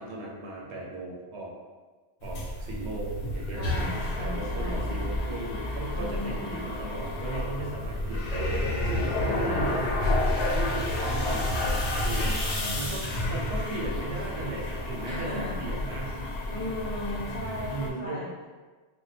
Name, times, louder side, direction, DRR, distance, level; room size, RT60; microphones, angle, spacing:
voice 1, 0.0-1.5 2.2-3.6 4.2-12.2 12.7-16.1 17.6-18.2, right 2 dB, 80° right, -3 dB, 1.0 m, -37 dB
sound 1, 2.2-17.9, left 1 dB, 90° left, 0.9 m, -30 dB
voice 2, 3.5-5.0 5.9-6.7 9.2-9.8 12.1-12.9 15.0-15.6 16.5-18.3, left 1 dB, 15° left, -9 dB, 1.0 m, -37 dB
3.6 x 2.2 x 2.8 m, 1.3 s
omnidirectional pair, 1.1 m